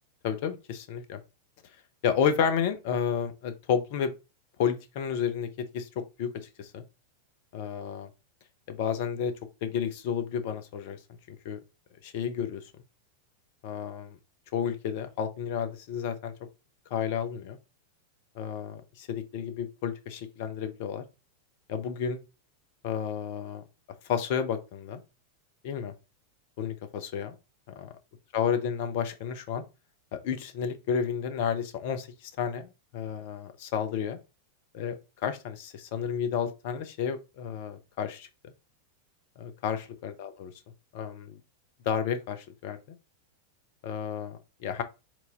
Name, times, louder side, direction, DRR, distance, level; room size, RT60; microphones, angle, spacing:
voice 1, 0.2-1.2 2.0-4.1 4.6-5.5 5.7-5.9 6.2-6.3 6.6-6.8 7.5-8.1 8.7-9.3 9.6-11.0 11.3-11.6 12.0-12.6 13.6-14.2 14.5-16.3 16.9-17.6 18.3-21.0 21.7-22.2 22.8-23.6 24.1-25.0 25.6-25.9 26.6-27.3 27.8-27.9 28.3-29.6 30.1-34.2 34.7-38.3 39.4-40.5 40.9-41.4 41.8-42.8 43.8-44.8, left 7 dB, 50° left, 0.8 m, -31 dB
4.6 x 4.0 x 2.5 m
figure-of-eight pair, 90°, 0 cm